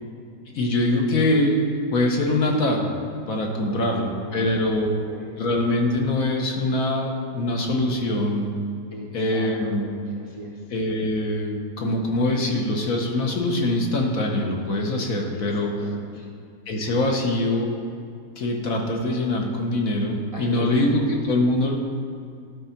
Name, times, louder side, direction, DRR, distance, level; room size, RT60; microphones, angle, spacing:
voice 1, 0.5-1.6 1.9-2.9 3.3-4.9 5.4-8.5 9.1-9.9 10.7-15.7 16.7-17.8 18.4-21.7, left 1 dB, 60° left, 0 dB, 1.4 m, -23 dB
voice 2, 3.7-5.4 8.9-10.6 15.3-16.3 20.3-20.9, right 1 dB, 30° right, -3 dB, 0.7 m, -38 dB
12.0 x 4.3 x 5.8 m, 2.3 s
omnidirectional pair, 1.7 m